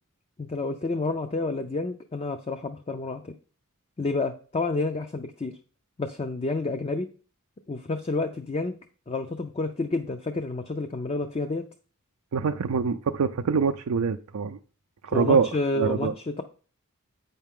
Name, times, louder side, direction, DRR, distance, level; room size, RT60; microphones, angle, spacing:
voice 1, 0.4-3.3 4.0-5.5 6.0-7.1 7.7-8.8 9.1-11.6 15.1-16.4, left 3 dB, 25° left, 7 dB, 0.4 m, -29 dB
voice 2, 12.3-14.6 15.0-15.5 15.7-16.1, right 5 dB, 80° right, 6 dB, 0.4 m, -24 dB
8.1 x 5.7 x 3.6 m, 0.40 s
head